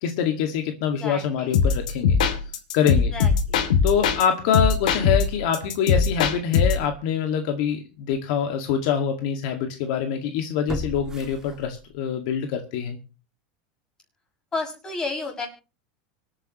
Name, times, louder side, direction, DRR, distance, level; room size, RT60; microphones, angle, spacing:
voice 1, 0.0-2.2 2.7-3.1 3.8-13.0, left 7 dB, 60° left, 5 dB, 2.0 m, -25 dB
voice 2, 1.0-1.5 3.1-3.6 14.5-15.5, left 3 dB, 15° left, 2 dB, 6.7 m, -31 dB
sound 1, 1.5-4.2 4.5-6.9, left 6 dB, 85° left, 2.7 m, -21 dB
sound 2, 7.4-7.5 8.1-8.2 10.7-12.1 12.5-12.6, right 1 dB, 15° right, 2.4 m, -35 dB
25.5 x 9.9 x 3.1 m, 0.33 s
supercardioid pair, 145°, 4 cm